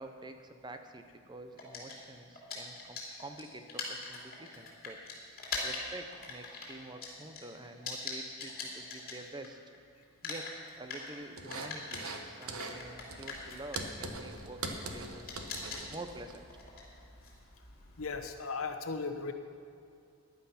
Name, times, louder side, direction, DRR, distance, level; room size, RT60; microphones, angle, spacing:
voice 1, 0.0-5.0 5.6-9.6 10.2-15.3 15.9-16.5, right 2 dB, 20° right, 7 dB, 0.7 m, -48 dB
sound 1, 1.6-9.8 10.0-18.3, left 4 dB, 40° left, 2.9 m, -43 dB
sound 2, 11.4-12.2 12.5-12.8 13.1-16.4, right 3 dB, 75° right, 1.2 m, -41 dB
voice 2, 18.0-19.3, left 4 dB, 70° left, 6 dB, 1.0 m, -36 dB
14.5 x 10.5 x 5.7 m, 2.5 s
head